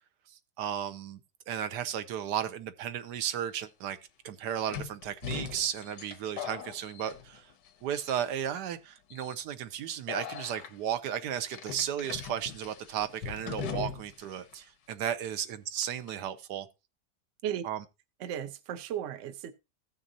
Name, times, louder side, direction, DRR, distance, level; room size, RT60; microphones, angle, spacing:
voice 1, 0.3-1.2 1.5-4.0 4.2-7.5 7.8-16.7 17.6-17.8, right 9 dB, 80° right, 1.3 m, -34 dB
sound 1, 3.3-3.4 4.7-7.7 8.0-8.5 9.1-9.3 10.1-10.7 11.5-14.3 14.5-14.6 15.8-16.1, left 8 dB, 90° left, 1.5 m, -40 dB
voice 2, 18.2-19.5, right 10 dB, 60° right, 0.9 m, -35 dB
16.0 x 6.3 x 2.7 m
omnidirectional pair, 1.8 m